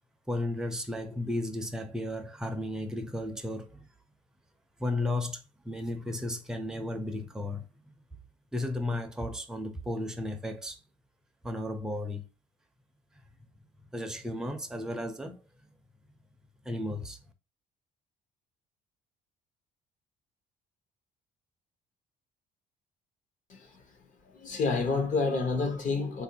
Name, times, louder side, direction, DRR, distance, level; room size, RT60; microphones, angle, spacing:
voice 1, 0.3-3.9 4.8-7.9 8.5-10.8 11.4-12.3 13.9-15.4 16.6-17.2, left 1 dB, 5° right, 0.5 m, -34 dB
voice 2, 23.5-26.2, left 4 dB, 50° left, 1.0 m, -30 dB
3.7 x 2.6 x 2.7 m
cardioid pair, 110°, 17 cm